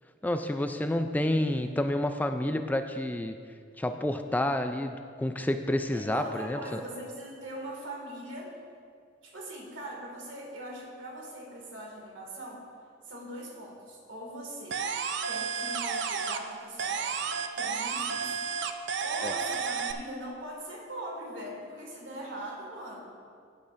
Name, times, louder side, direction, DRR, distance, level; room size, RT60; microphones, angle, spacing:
voice 1, 0.2-3.4 3.8-6.8 19.2-19.3, left 1 dB, 10° left, 7 dB, 0.3 m, -29 dB
voice 2, 5.9-8.5 9.2-12.6 13.0-14.8 15.3-18.5 18.8-23.1, right 1 dB, 85° right, -1 dB, 2.1 m, -41 dB
Lead Synth Loop, 14.7-16.5 16.8-19.9, right 6 dB, 65° right, 0.5 m, -32 dB
15.5 x 8.6 x 2.5 m, 2.2 s
head